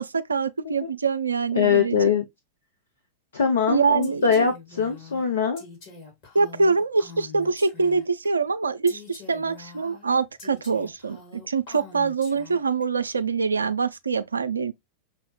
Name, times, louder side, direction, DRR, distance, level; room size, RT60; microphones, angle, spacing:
voice 1, 0.0-2.2 3.7-4.5 6.3-14.7, right 4 dB, 75° right, 0.4 m, -24 dB
voice 2, 1.6-2.2 3.3-5.6, left 6 dB, 65° left, 0.6 m, -22 dB
Female speech woman speaking, 4.0-8.3 8.9-12.8, left 5 dB, 45° left, 2.2 m, -45 dB
6.0 x 2.0 x 2.9 m
figure-of-eight pair, 90°, 0 cm